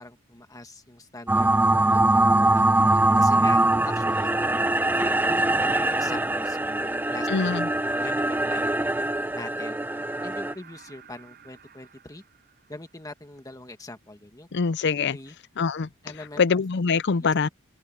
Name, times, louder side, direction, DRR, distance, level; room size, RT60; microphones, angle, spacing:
voice 1, 0.0-2.7 3.2-4.3 4.9-7.3 7.8-8.6 9.3-9.8 10.2-12.2 12.7-14.5 15.1-15.3 16.0-16.6 16.9-17.3, left 2 dB, 15° left, 1.4 m, -42 dB
sound 1, 1.3-10.5, right 2 dB, 10° right, 0.6 m, -22 dB
voice 2, 7.3-7.7 14.5-15.2 15.6-15.9 16.4-17.5, left 5 dB, 55° left, 0.5 m, -23 dB
sound 2, 9.7-13.5 15.4-15.5, right 8 dB, 45° right, 6.8 m, -53 dB
open air
head